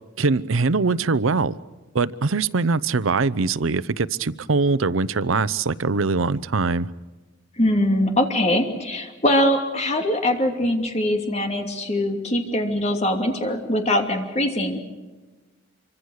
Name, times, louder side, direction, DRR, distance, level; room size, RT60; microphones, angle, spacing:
voice 1, 0.2-1.6 1.9-6.9, right 4 dB, 85° right, 0.7 m, -22 dB
voice 2, 7.6-14.8, left 1 dB, 35° left, 2.9 m, -22 dB
26.5 x 24.5 x 6.5 m
head